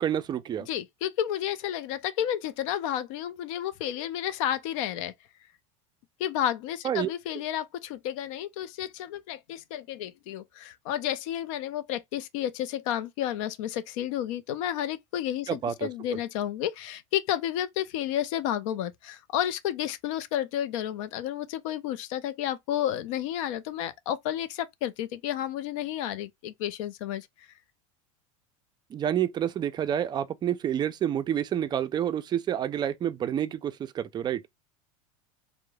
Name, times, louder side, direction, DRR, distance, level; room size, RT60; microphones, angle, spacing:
voice 1, 0.0-0.7 6.8-7.1 15.5-15.9 28.9-34.4, right 10 dB, 25° right, 0.3 m, -28 dB
voice 2, 0.7-5.1 6.2-27.3, left 11 dB, 70° left, 0.4 m, -31 dB
2.9 x 2.1 x 2.2 m
supercardioid pair, 110°, 18 cm